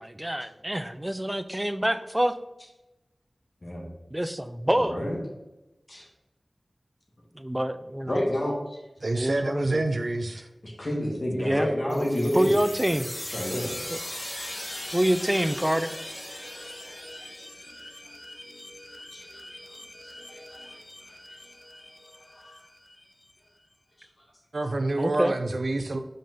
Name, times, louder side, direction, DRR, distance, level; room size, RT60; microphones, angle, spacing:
voice 1, 0.0-2.3 4.1-5.0 7.4-8.2 9.0-9.8 11.3-12.1 12.3-13.1 13.9-14.0 14.9-15.9 25.0-25.3, right 1 dB, 15° right, 11 dB, 0.5 m, -26 dB
voice 2, 4.8-5.2 5.9-6.0 8.1-8.8 10.6-12.6 13.3-13.8 19.1-19.4 20.0-20.1, left 1 dB, 45° left, -2 dB, 2.2 m, -29 dB
voice 3, 9.0-10.5 24.5-26.0, right 2 dB, 70° right, 7 dB, 0.5 m, -27 dB
sound 1, 11.9-23.3, left 1 dB, 30° left, 1.2 m, -40 dB
5.5 x 5.4 x 5.5 m, 0.98 s
wide cardioid pair, 70°, 0 cm